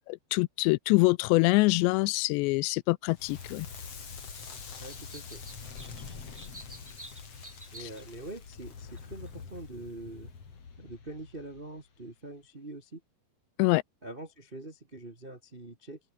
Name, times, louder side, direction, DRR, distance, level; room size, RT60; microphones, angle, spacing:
voice 1, 0.3-3.7 13.6-13.8, left 24 dB, 85° left, 2.7 m, -24 dB
Crackle, 3.1-12.0, left 5 dB, 35° left, 4.1 m, -45 dB
sound 1, 4.5-4.6 4.9-8.0 9.0-9.1 9.2-9.3, right 1 dB, 15° right, 0.6 m, -49 dB
voice 2, 4.8-5.4 7.7-10.3 10.8-13.0 14.0-16.0, right 2 dB, 90° right, 0.4 m, -44 dB
open air
omnidirectional pair, 5.1 m